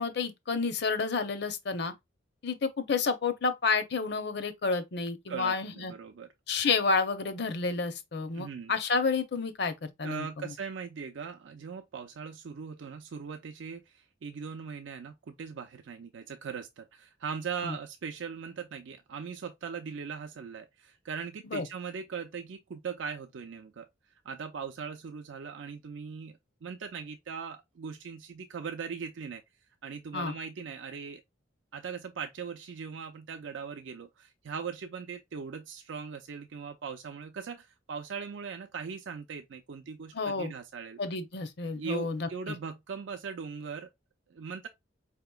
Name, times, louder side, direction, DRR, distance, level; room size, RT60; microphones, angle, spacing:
voice 1, 0.0-1.9 2.4-5.9 6.5-10.3 17.6-17.8 21.5-21.7 30.1-30.3 40.1-40.5 41.0-42.3, left 4 dB, 55° left, 0.6 m, -30 dB
voice 2, 5.3-6.3 8.3-8.7 10.0-23.9 24.2-29.4 29.8-31.2 31.7-41.0 41.8-43.9 44.3-44.7, right 6 dB, 70° right, 0.4 m, -40 dB
4.9 x 2.9 x 2.2 m
head